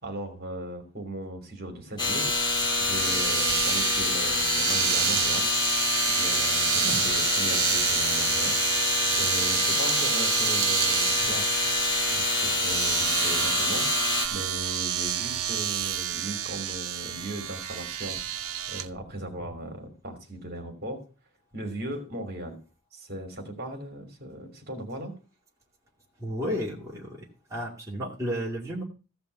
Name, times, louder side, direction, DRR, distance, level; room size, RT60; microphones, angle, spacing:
voice 1, 0.0-2.3 2.8-5.5 6.1-8.6 9.1-11.6 12.1-13.9 14.3-18.2 18.7-21.0 21.5-22.6 22.9-25.1, right 1 dB, 45° right, 5 dB, 3.0 m, -37 dB
sound 1, 2.0-14.3, left 3 dB, 20° left, 2.2 m, -26 dB
Domestic sounds home sounds, 2.0-18.9, right 11 dB, 85° right, 0.8 m, -29 dB
voice 2, 26.2-28.8, equal, 15° right, -4 dB, 2.4 m, -33 dB
15.0 x 5.2 x 8.1 m, 0.34 s
head